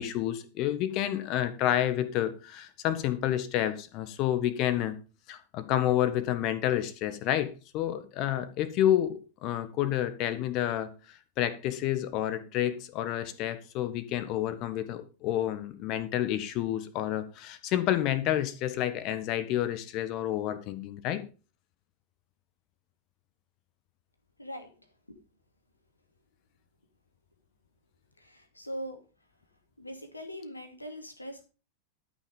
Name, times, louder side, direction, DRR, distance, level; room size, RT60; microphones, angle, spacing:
voice 1, 0.0-5.0 5.3-21.2, left 12 dB, 40° left, 1.5 m, -29 dB
voice 2, 24.4-24.7 28.2-29.0 29.8-31.5, equal, 85° left, 2.4 m, -41 dB
13.0 x 6.0 x 5.4 m
figure-of-eight pair, 90°, 0 cm